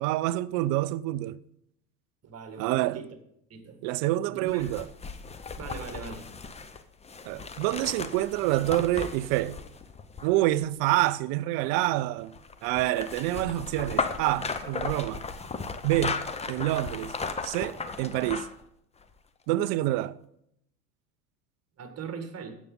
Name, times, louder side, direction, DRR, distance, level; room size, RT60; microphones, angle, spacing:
voice 1, 0.0-1.4 2.6-3.0 3.8-4.9 7.3-9.6 10.2-15.3 15.8-16.2 16.5-17.1 17.4-18.5 19.5-20.2, right 16 dB, 45° right, 0.5 m, -27 dB
voice 2, 2.2-3.1 3.5-3.8 4.3-4.7 5.6-6.3 21.8-22.6, right 6 dB, 30° right, 2.0 m, -40 dB
sound 1, 4.5-10.7 12.3-18.6 19.0-19.1, left 4 dB, 15° left, 0.8 m, -36 dB
16.0 x 7.1 x 3.9 m
hypercardioid pair, 85°, 48 cm